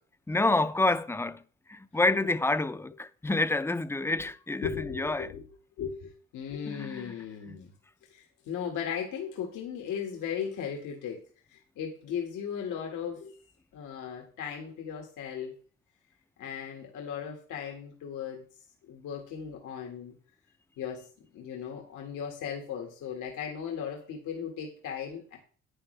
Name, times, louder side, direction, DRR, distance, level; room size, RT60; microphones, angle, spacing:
voice 1, 0.3-1.4 1.7-5.3 6.7-7.1 7.5-7.6, left 2 dB, 10° left, 0.6 m, -28 dB
voice 2, 4.6-5.5 5.8-7.7 8.0-11.2 11.5-13.4 13.7-15.5 16.4-18.4 18.9-20.1 20.8-21.1 21.3-25.4, left 7 dB, 85° left, 1.9 m, -37 dB
11.0 x 9.0 x 3.3 m
cardioid pair, 90°, 30 cm